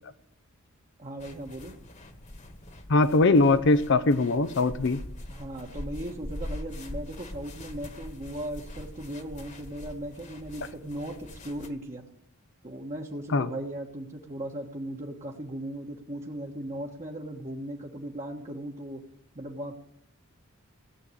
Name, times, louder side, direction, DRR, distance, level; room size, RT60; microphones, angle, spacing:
voice 1, 1.0-1.7 5.3-12.0 12.6-19.0 19.3-19.7, right 1 dB, 35° right, -1 dB, 1.4 m, -37 dB
sound 1, 1.2-11.7, left 1 dB, 35° left, 1.6 m, -42 dB
voice 2, 2.9-5.0 13.3-13.5, left 3 dB, 60° left, 10 dB, 0.7 m, -21 dB
17.0 x 7.7 x 9.7 m, 0.74 s
head